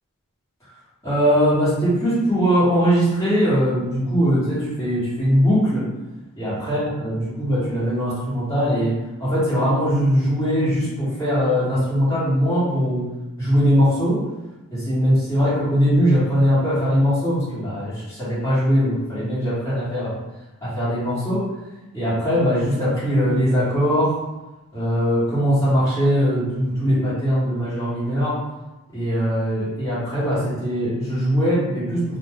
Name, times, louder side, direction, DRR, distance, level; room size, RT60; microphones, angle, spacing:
voice 1, 1.0-5.9 6.4-13.1 13.4-14.2 14.7-20.2 20.6-21.4 21.9-24.2 24.7-28.4 28.9-32.0, equal, 15° left, -12 dB, 1.3 m, -21 dB
2.5 x 2.1 x 3.4 m, 1.0 s
head